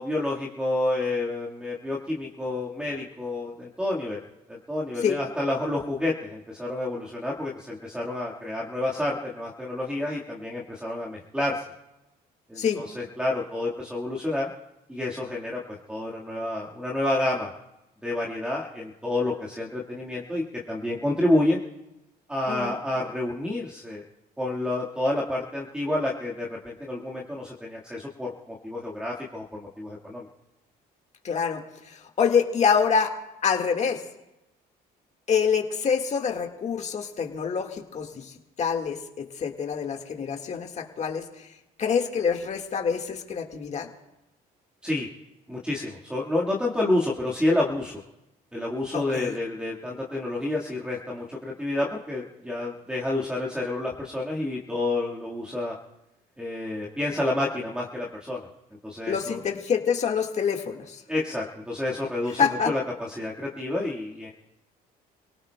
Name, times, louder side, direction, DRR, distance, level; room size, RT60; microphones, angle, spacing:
voice 1, 0.0-4.2 4.5-11.6 12.5-14.5 14.9-17.5 18.0-21.6 22.3-24.0 24.4-30.3 44.8-45.1 45.5-48.0 48.5-55.7 56.4-58.5 58.8-59.4 61.1-64.3, left 1 dB, 5° right, -3 dB, 1.6 m, -29 dB
voice 2, 31.2-33.1 33.4-34.0 35.3-41.5 41.8-43.9 48.9-49.4 59.1-61.0 62.4-62.7, left 6 dB, 45° left, 4 dB, 1.7 m, -26 dB
29.5 x 18.0 x 2.2 m, 0.93 s
cardioid pair, 110°, 17 cm